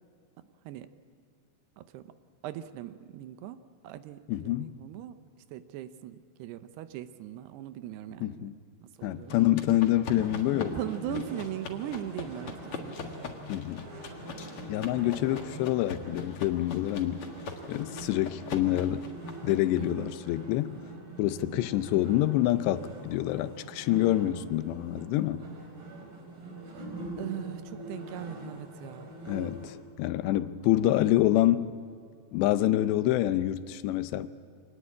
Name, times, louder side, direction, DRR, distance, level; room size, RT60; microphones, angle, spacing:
voice 1, 1.8-2.1 2.4-5.2 5.5-8.5 9.0-9.4 10.8-13.1 19.8-20.1 21.4-21.7 27.2-29.1, right 11 dB, 80° right, 2.8 m, -40 dB
voice 2, 4.3-4.8 8.2-8.5 9.0-10.8 13.5-13.8 14.7-17.2 17.7-19.1 19.4-20.8 21.2-25.5 29.3-31.7 32.3-34.3, left 14 dB, 85° left, 2.9 m, -27 dB
sound 1, 9.3-19.8, left 4 dB, 50° left, 1.8 m, -42 dB
sound 2, 10.2-29.7, right 1 dB, 55° right, 5.5 m, -44 dB
25.0 x 19.0 x 8.6 m
omnidirectional pair, 4.9 m